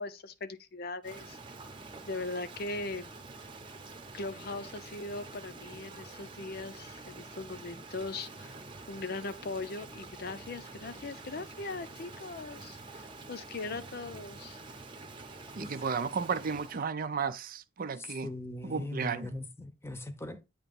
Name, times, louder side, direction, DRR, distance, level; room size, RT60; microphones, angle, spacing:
voice 1, 0.0-1.4 2.1-3.1 4.1-8.5 8.9-14.6, left 3 dB, 55° left, 0.6 m, -40 dB
Rain, 1.0-16.9, right 3 dB, 25° right, 0.9 m, -47 dB
voice 2, 15.6-18.3 18.6-19.4, right 5 dB, 50° right, 0.5 m, -33 dB
voice 3, 18.2-20.4, left 1 dB, 15° left, 0.8 m, -40 dB
8.7 x 2.9 x 5.3 m
head